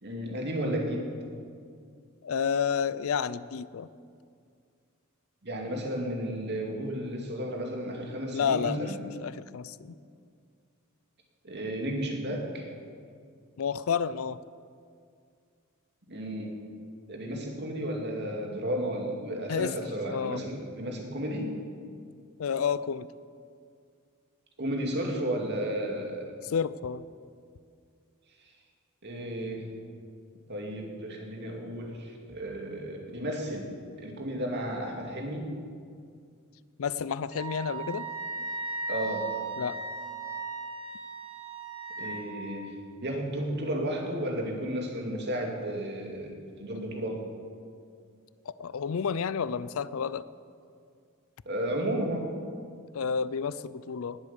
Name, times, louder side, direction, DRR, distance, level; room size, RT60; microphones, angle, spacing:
voice 1, 0.0-1.1 5.4-9.0 11.4-12.7 16.1-16.6 17.1-21.5 24.6-26.3 29.0-29.7 30.5-33.7 34.0-35.5 38.9-39.3 42.0-42.8 43.0-47.2 51.5-52.3, right 1 dB, 55° right, 1 dB, 2.5 m, -33 dB
voice 2, 2.2-3.9 8.3-9.9 13.6-14.4 19.5-19.7 20.1-20.4 22.4-23.1 26.4-27.0 36.8-38.1 39.6-39.8 48.5-50.2 52.9-54.2, left 6 dB, 70° left, 17 dB, 0.4 m, -30 dB
Wind instrument woodwind instrument, 37.3-42.2, right 3 dB, 70° right, 4.5 m, -36 dB
19.5 x 8.2 x 7.1 m, 2.2 s
head